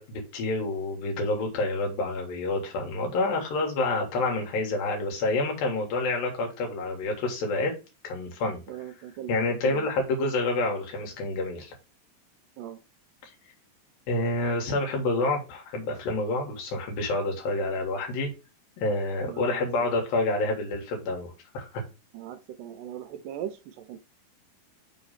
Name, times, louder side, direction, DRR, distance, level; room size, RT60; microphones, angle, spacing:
voice 1, 0.0-7.7 8.0-8.6 9.3-11.8 13.2-13.3 14.1-18.3 18.8-21.8, left 2 dB, 85° left, 3.4 m, -28 dB
voice 2, 8.7-9.9 12.6-12.8 19.2-19.6 22.1-24.0, right 10 dB, 80° right, 2.1 m, -39 dB
6.2 x 3.1 x 5.6 m
omnidirectional pair, 4.0 m